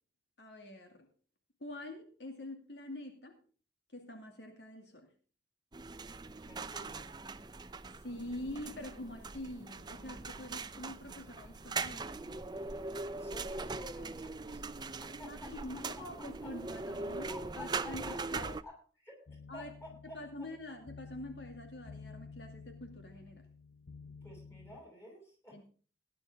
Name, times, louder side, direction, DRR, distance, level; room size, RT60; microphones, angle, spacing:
voice 1, 0.4-1.1 1.6-3.4 3.9-5.1 7.9-12.4 15.3-17.3 17.6-18.6 19.5-19.7 20.0-23.5 25.5-25.7, left 1 dB, 70° left, 4 dB, 2.4 m, -46 dB
sound 1, 5.7-18.6, right 3 dB, 25° right, 0.6 m, -41 dB
voice 2, 6.4-7.2 13.1-15.5 16.4-16.5 17.3-20.5 24.2-25.7, left 1 dB, 15° left, 1 dB, 6.7 m, -52 dB
sound 2, 19.3-24.8, left 4 dB, 85° left, 0.9 m, -52 dB
17.5 x 10.5 x 3.6 m, 0.39 s
head